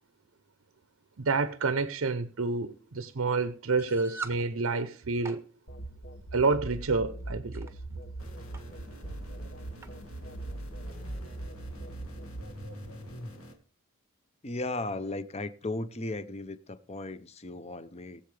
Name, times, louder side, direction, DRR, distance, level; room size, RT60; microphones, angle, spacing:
voice 1, 1.2-5.4 6.3-7.7, right 4 dB, 65° right, 0.7 m, -29 dB
sound 1, 3.8-4.4 5.0-5.4 6.4-6.6 7.3-7.7 8.5-8.6 8.9-9.0 9.8-10.0, right 4 dB, 10° right, 0.8 m, -41 dB
sound 2, 5.7-13.3, right 1 dB, 55° left, 1.5 m, -41 dB
sound 3, 8.2-13.5, equal, 75° left, 2.2 m, -49 dB
voice 2, 14.4-18.2, left 2 dB, 30° left, 0.7 m, -36 dB
20.5 x 7.8 x 3.3 m
head